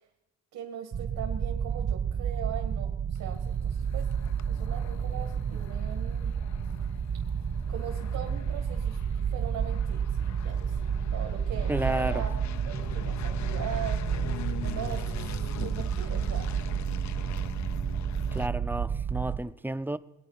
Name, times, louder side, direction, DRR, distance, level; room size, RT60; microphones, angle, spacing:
voice 1, 0.5-4.1 4.5-6.3 7.7-9.0 9.3-10.8 11.1-12.3 12.7-16.7, right 9 dB, 80° right, 2.1 m, -40 dB
sound 1, 0.9-19.4, right 7 dB, 45° right, 1.0 m, -30 dB
sound 2, 3.1-18.5, left 10 dB, 65° left, 0.7 m, -43 dB
voice 2, 11.7-12.3 18.3-20.0, right 1 dB, 5° right, 0.6 m, -31 dB
23.0 x 8.8 x 5.9 m
cardioid pair, 90°, 30 cm